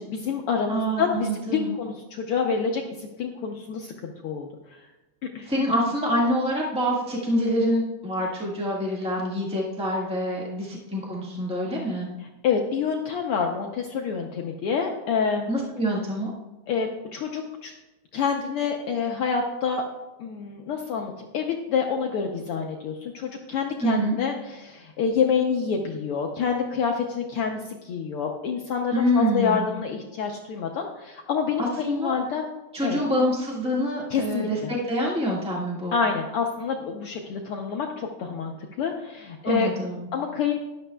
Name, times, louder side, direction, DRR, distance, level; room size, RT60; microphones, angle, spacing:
voice 1, 0.0-4.8 5.3-5.5 12.4-15.5 16.7-17.7 18.1-19.8 20.2-32.5 32.8-33.0 34.1-34.7 35.9-38.5 38.8-39.7 40.1-40.5, left 6 dB, 80° left, 2 dB, 1.2 m, -27 dB
voice 2, 0.7-1.7 5.5-12.1 15.5-16.3 23.8-24.1 28.9-29.6 31.6-32.2 32.7-36.0 39.4-40.1, equal, 5° right, -4 dB, 0.4 m, -26 dB
12.5 x 11.0 x 2.3 m, 1.0 s
omnidirectional pair, 3.4 m